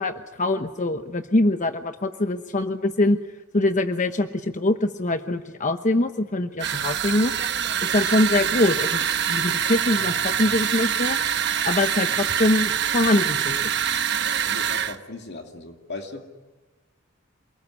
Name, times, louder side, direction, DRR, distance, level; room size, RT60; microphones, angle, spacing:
voice 1, 0.0-3.2 3.5-7.3 7.8-11.2 11.6-13.8, left 2 dB, 40° left, 8 dB, 1.0 m, -23 dB
sound 1, 6.6-15.0, right 8 dB, 60° right, 1.1 m, -25 dB
voice 2, 14.4-16.3, left 2 dB, 55° left, 3 dB, 2.6 m, -37 dB
28.0 x 20.0 x 9.7 m, 1.3 s
head